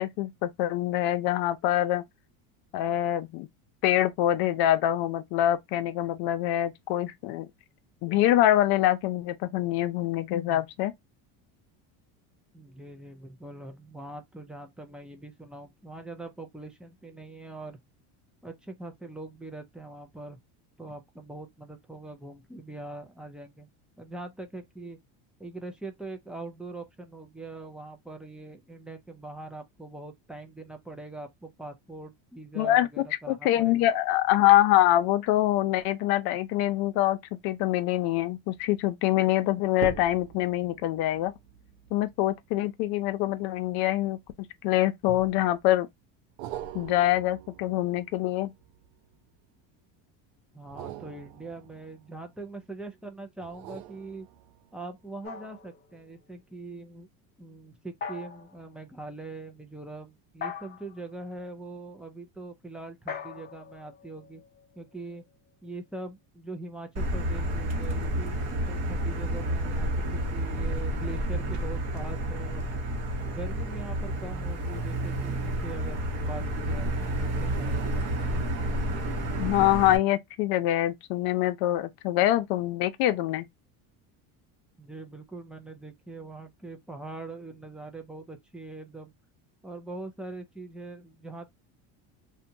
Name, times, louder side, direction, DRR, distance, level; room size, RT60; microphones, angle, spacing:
voice 1, 0.0-2.0 2.7-3.5 3.8-7.5 8.0-10.9 32.6-32.9 33.3-41.3 41.9-44.2 44.6-45.9 46.7-48.5 79.4-83.5, left 14 dB, 65° left, 0.6 m, -25 dB
voice 2, 12.5-17.8 18.4-20.4 20.8-23.7 24.0-25.0 25.4-33.9 50.5-54.3 54.7-57.1 57.4-64.4 64.8-65.2 65.6-68.4 68.6-72.7 73.3-76.9 77.4-78.0 84.8-89.1 89.6-91.5, right 2 dB, 5° right, 0.3 m, -42 dB
sound 1, 38.5-38.9 39.7-44.4 45.1-45.7 46.4-49.4 50.6-52.7 53.4-54.8 55.3-55.4, right 11 dB, 90° right, 0.5 m, -44 dB
sound 2, 55.2-56.3 58.0-58.6 60.4-61.1 63.1-64.8, left 6 dB, 25° left, 0.7 m, -41 dB
Motor vehicle (road), 67.0-80.0, right 1 dB, 40° right, 0.8 m, -30 dB
2.8 x 2.2 x 2.6 m
cardioid pair, 130°, 40 cm